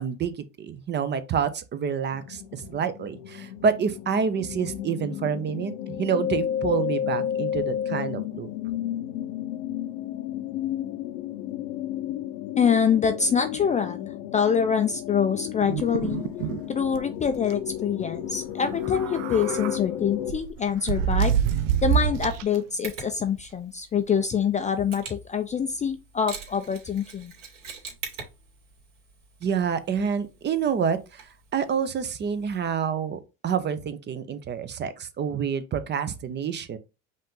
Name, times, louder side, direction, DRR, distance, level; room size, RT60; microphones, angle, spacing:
voice 1, 0.0-5.7 6.0-8.5 29.4-36.8, right 7 dB, 30° right, 0.6 m, -28 dB
sound 1, 2.1-20.3, left 10 dB, 75° left, 0.8 m, -32 dB
voice 2, 12.6-16.3 16.7-21.3 21.8-27.3, left 7 dB, 20° left, 0.4 m, -25 dB
sound 2, 15.6-16.6 16.9-17.0 17.3-17.5 18.7-19.8 20.3-22.6, right 9 dB, 80° right, 0.6 m, -26 dB
Mechanisms, 22.8-32.7, right 5 dB, 60° right, 2.3 m, -45 dB
5.3 x 2.6 x 3.7 m
supercardioid pair, 95°, 37 cm